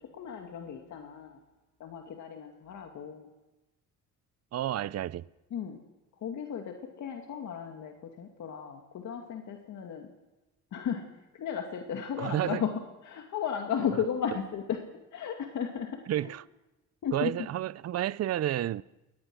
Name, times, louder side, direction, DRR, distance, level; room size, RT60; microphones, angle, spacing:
voice 1, 0.1-1.4 1.8-3.3 5.5-5.8 6.2-10.1 10.7-11.0 11.3-12.7 13.0-14.8 15.1-16.3 17.0-17.3, left 8 dB, 70° left, 2.4 m, -35 dB
voice 2, 4.5-5.3 12.2-12.6 16.1-16.4 17.1-18.8, right 12 dB, 55° right, 0.6 m, -30 dB
22.5 x 19.5 x 6.3 m
cardioid pair, 90°, 30 cm